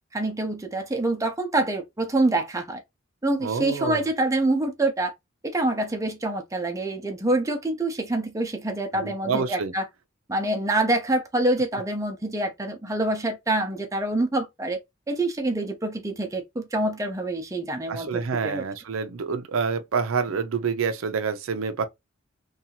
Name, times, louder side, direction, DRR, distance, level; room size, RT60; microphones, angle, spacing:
voice 1, 0.1-2.8 3.2-5.1 5.4-9.9 10.3-14.8 15.1-18.6, right 2 dB, 15° right, 0.5 m, -26 dB
voice 2, 3.4-4.0 8.9-9.7 17.9-21.9, right 5 dB, 90° right, 0.5 m, -27 dB
2.6 x 2.3 x 2.7 m
head